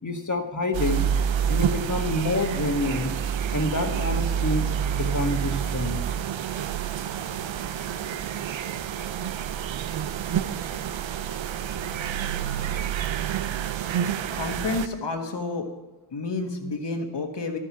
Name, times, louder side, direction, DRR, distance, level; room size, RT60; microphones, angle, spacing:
voice 1, 0.0-1.1 1.5-3.2 3.5-6.0 12.7-12.8, left 2 dB, 40° left, 5 dB, 1.5 m, -28 dB
sound 1, 0.7-14.9, right 9 dB, 85° right, 0.6 m, -28 dB
voice 2, 14.3-15.7 16.1-17.6, left 3 dB, 65° left, 4 dB, 1.7 m, -30 dB
12.0 x 7.4 x 6.0 m, 1.2 s
cardioid pair, 50°, 45 cm